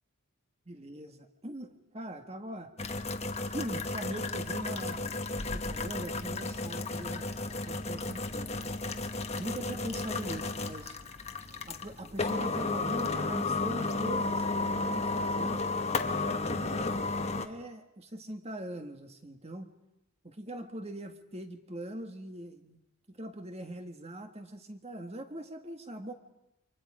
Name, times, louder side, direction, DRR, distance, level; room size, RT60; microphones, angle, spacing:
voice 1, 0.7-2.7 3.5-5.2 5.5-8.7 9.4-11.0 11.7-15.6 16.1-17.0 17.4-19.7 20.2-22.8 23.1-26.1, right 1 dB, 30° right, 6 dB, 1.7 m, -42 dB
sound 1, 2.8-17.5, left 3 dB, 30° left, 1.2 m, -33 dB
29.5 x 25.5 x 5.0 m, 0.86 s
head